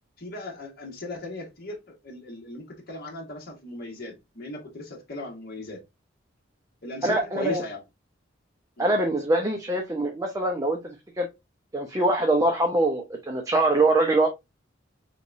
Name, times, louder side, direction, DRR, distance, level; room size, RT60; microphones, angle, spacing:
voice 1, 0.2-5.8 6.8-7.8 8.8-8.9, left 2 dB, 55° left, 1.4 m, -37 dB
voice 2, 7.0-7.6 8.8-11.3 11.7-14.3, right 2 dB, 20° right, 0.7 m, -23 dB
4.0 x 3.4 x 2.5 m
head